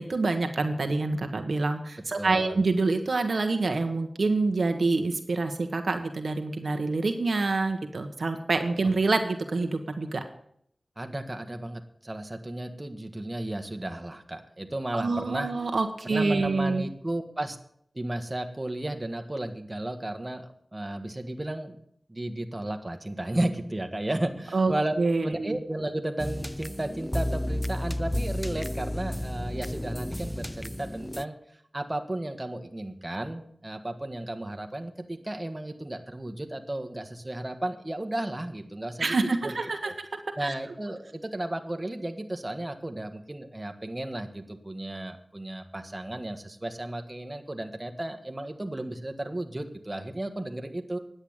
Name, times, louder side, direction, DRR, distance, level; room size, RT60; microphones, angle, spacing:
voice 1, 0.0-10.2 14.9-16.8 24.5-25.6 39.0-40.5, right 3 dB, 75° right, 6 dB, 1.2 m, -27 dB
voice 2, 2.2-2.6 11.0-15.5 16.0-17.6 17.9-21.8 22.1-31.3 31.7-39.2 39.4-39.9 40.4-51.0, right 1 dB, 25° right, 6 dB, 1.4 m, -34 dB
sound 1, 26.2-31.2, left 1 dB, 10° left, 0.4 m, -32 dB
10.0 x 8.0 x 8.8 m, 0.69 s
wide cardioid pair, 60°, 0 cm